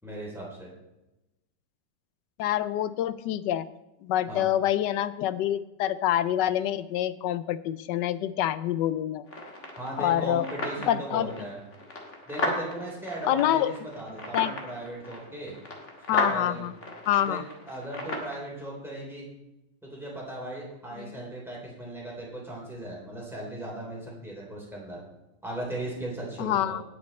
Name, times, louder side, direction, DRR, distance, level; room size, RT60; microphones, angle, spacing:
voice 1, 0.0-0.7 4.3-4.5 9.8-11.6 12.3-15.6 16.1-16.7 17.2-17.4 17.7-19.3 19.8-25.0 25.4-26.8, right 1 dB, ahead, -4 dB, 3.6 m, -37 dB
voice 2, 2.4-3.7 4.0-9.2 10.0-10.4 10.9-11.3 13.2-13.7 14.3-14.6 16.1-16.7 17.1-17.4 21.0-21.2 26.4-26.8, left 12 dB, 75° left, 15 dB, 1.2 m, -26 dB
sound 1, 9.3-18.3, left 1 dB, 40° left, 2.1 m, -36 dB
18.0 x 6.4 x 4.2 m, 0.95 s
omnidirectional pair, 1.9 m